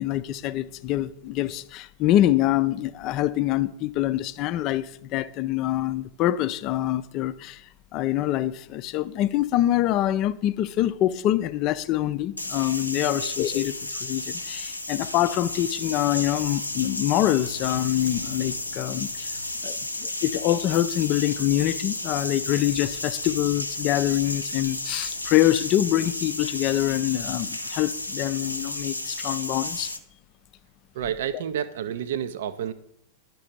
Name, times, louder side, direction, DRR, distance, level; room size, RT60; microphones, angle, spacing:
voice 1, 0.0-7.6 7.9-19.3 19.6-29.9, left 13 dB, 40° left, 0.4 m, -25 dB
sound 1, 12.4-30.0, left 2 dB, 85° left, 0.6 m, -33 dB
voice 2, 30.9-32.7, right 9 dB, 60° right, 0.4 m, -30 dB
10.5 x 6.0 x 5.1 m
figure-of-eight pair, 90°, 0 cm